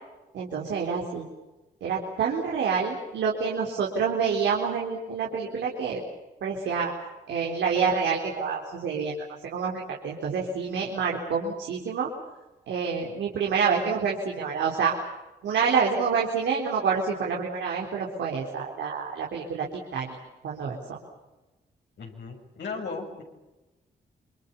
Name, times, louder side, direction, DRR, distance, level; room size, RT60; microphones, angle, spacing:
voice 1, 0.3-1.3 1.8-6.0 6.4-6.9 7.3-9.2 9.4-12.1 12.7-14.9 15.4-19.7 19.9-20.2 20.4-20.8, right 6 dB, 85° right, -1 dB, 4.0 m, -27 dB
voice 2, 22.0-23.2, left 4 dB, 75° left, 1 dB, 7.2 m, -36 dB
28.0 x 23.0 x 7.2 m, 1.1 s
cardioid pair, 60°, 18 cm